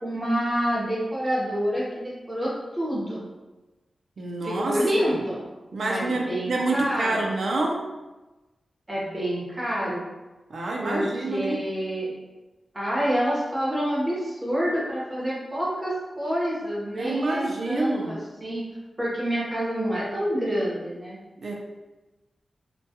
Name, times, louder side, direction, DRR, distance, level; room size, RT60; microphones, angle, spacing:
voice 1, 0.0-3.3 4.4-5.4 5.8-7.2 8.9-10.0 10.8-12.1 12.7-18.7 19.0-21.2, equal, 20° right, -6 dB, 0.8 m, -27 dB
voice 2, 4.2-4.8 5.1-5.2 5.7-7.8 10.5-11.6 16.9-18.2 21.4-21.5, right 2 dB, 70° right, -1 dB, 0.4 m, -27 dB
2.2 x 2.2 x 2.8 m, 1.1 s
wide cardioid pair, 125°, 0 cm